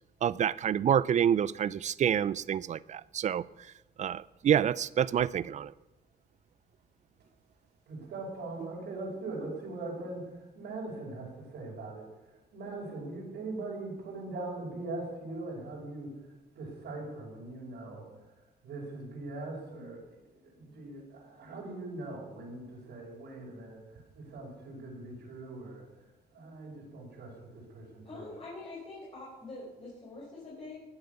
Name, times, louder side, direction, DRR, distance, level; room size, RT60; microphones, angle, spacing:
voice 1, 0.2-3.4 4.0-5.7, right 9 dB, 45° right, 20 dB, 0.4 m, -27 dB
voice 2, 7.9-16.2 16.6-18.1 18.6-25.9 26.3-28.3, right 2 dB, 80° right, -3 dB, 5.4 m, -41 dB
voice 3, 28.0-30.8, left 2 dB, 35° left, -6 dB, 5.0 m, -44 dB
20.0 x 8.0 x 6.9 m, 1.1 s
cardioid pair, 135°, 17 cm